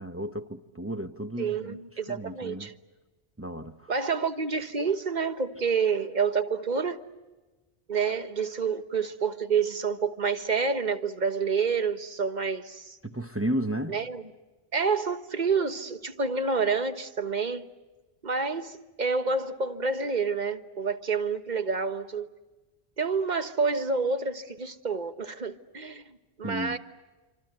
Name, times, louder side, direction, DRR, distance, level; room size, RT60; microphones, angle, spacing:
voice 1, 0.0-1.8 2.1-2.7 3.4-3.9 13.0-14.0 26.4-26.8, right 1 dB, 15° right, 1.0 m, -33 dB
voice 2, 1.4-2.7 3.9-7.1 7.9-13.0 13.9-14.2 14.7-17.6 18.2-22.3 23.0-26.0 26.4-26.8, right 5 dB, 45° right, 1.4 m, -28 dB
27.0 x 26.0 x 8.0 m
omnidirectional pair, 1.0 m